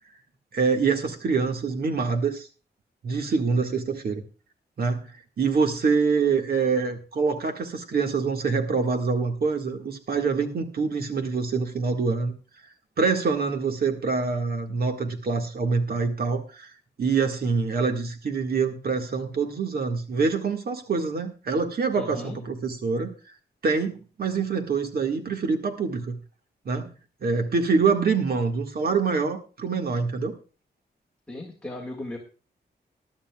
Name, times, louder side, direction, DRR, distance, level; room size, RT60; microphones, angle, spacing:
voice 1, 0.5-2.5 3.0-4.2 4.8-12.3 13.0-16.7 17.0-23.1 23.6-26.2 26.6-26.9 27.2-30.3, right 4 dB, 60° right, 4 dB, 1.8 m, -25 dB
voice 2, 21.9-22.4 31.3-32.2, left 1 dB, 5° left, -4 dB, 1.9 m, -36 dB
21.0 x 11.5 x 2.3 m, 0.35 s
wide cardioid pair, 175°, 18 cm